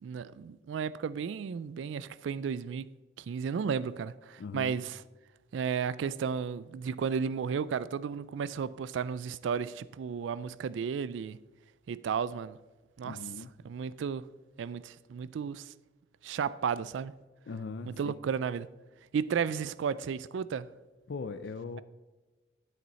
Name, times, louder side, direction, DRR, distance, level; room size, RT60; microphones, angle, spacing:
voice 1, 0.0-2.9 3.2-5.0 5.5-11.4 11.9-12.6 13.0-13.2 13.6-14.3 14.6-15.7 16.2-17.1 18.0-18.7 19.1-20.7, right 6 dB, 85° right, 0.3 m, -33 dB
voice 2, 4.4-4.8 13.0-13.5 17.5-18.1 21.1-21.8, left 4 dB, 70° left, 0.4 m, -40 dB
9.3 x 8.1 x 4.1 m
head